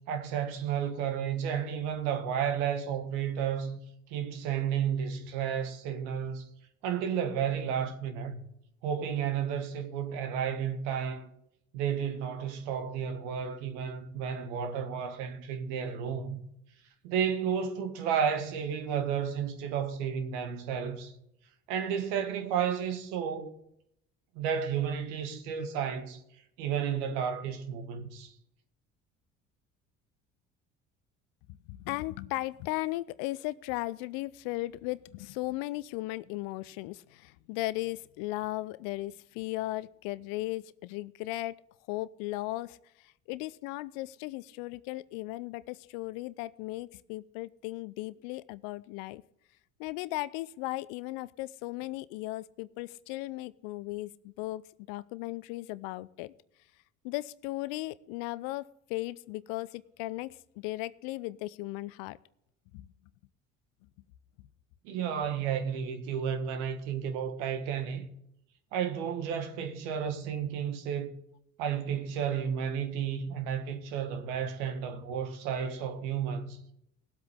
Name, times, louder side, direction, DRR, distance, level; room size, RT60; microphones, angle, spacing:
voice 1, 0.1-3.8 4.1-6.5 6.8-8.4 8.8-11.3 11.7-16.4 17.0-21.1 21.7-23.6 24.3-26.2 26.6-28.3 64.8-68.1 68.7-71.1 71.6-76.6, right 8 dB, 70° right, 1.6 m, -32 dB
voice 2, 31.5-41.6 41.9-49.2 49.8-54.6 54.9-56.3 57.0-62.2 62.7-62.9, left 18 dB, 65° left, 0.6 m, -36 dB
19.5 x 8.0 x 3.6 m
hypercardioid pair, 60°, 36 cm